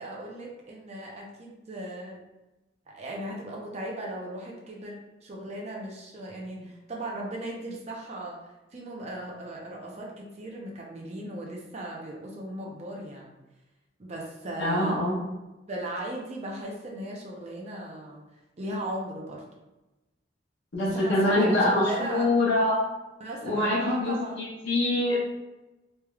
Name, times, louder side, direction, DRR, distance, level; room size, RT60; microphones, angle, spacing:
voice 1, 0.0-2.2 2.9-13.3 14.0-15.0 15.7-18.3 18.6-19.4 20.8-22.4 23.2-24.4, right 1 dB, 35° right, -2 dB, 0.5 m, -37 dB
voice 2, 14.6-15.2 20.7-22.8 23.4-25.2, left 1 dB, 85° left, -7 dB, 0.8 m, -24 dB
3.2 x 3.0 x 2.3 m, 1.0 s
head